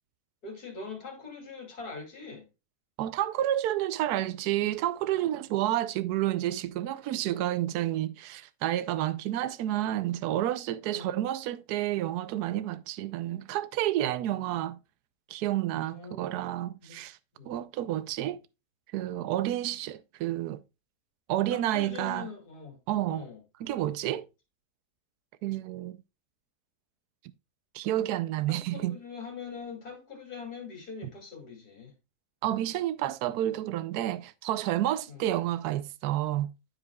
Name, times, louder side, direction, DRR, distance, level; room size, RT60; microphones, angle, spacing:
voice 1, 0.4-2.5 10.9-11.2 15.7-16.4 16.8-17.0 17.4-17.6 21.5-22.8 23.0-23.4 28.5-31.9 35.1-35.3, left 5 dB, 75° left, 3.4 m, -43 dB
voice 2, 3.0-14.8 15.3-17.2 17.5-18.4 18.9-20.6 21.3-22.3 22.9-23.3 23.6-24.3 25.4-26.0 27.7-28.9 32.4-36.5, right 13 dB, 80° right, 1.1 m, -30 dB
13.0 x 4.9 x 2.3 m
omnidirectional pair, 1.7 m